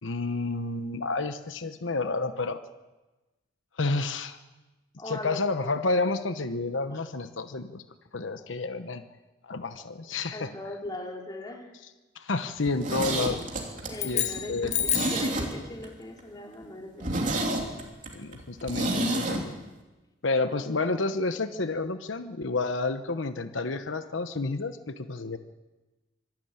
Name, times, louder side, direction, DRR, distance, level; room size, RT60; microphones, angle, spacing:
voice 1, 0.0-2.6 3.8-4.4 5.1-7.8 8.1-9.0 9.4-10.5 12.1-13.4 14.0-14.7 18.1-19.6 20.2-25.4, left 3 dB, 90° left, 10 dB, 1.0 m, -30 dB
voice 2, 5.0-5.4 10.3-11.7 13.9-17.3, left 1 dB, 20° left, 1 dB, 3.1 m, -40 dB
Zipper (clothing), 12.6-15.9 16.2-16.3 16.6-16.7 17.0-19.4 19.7-19.8, right 2 dB, 45° right, 3.2 m, -30 dB
sound 1, 13.9-15.3, left 10 dB, 35° left, 1.5 m, -29 dB
25.0 x 12.0 x 8.9 m, 1.1 s
head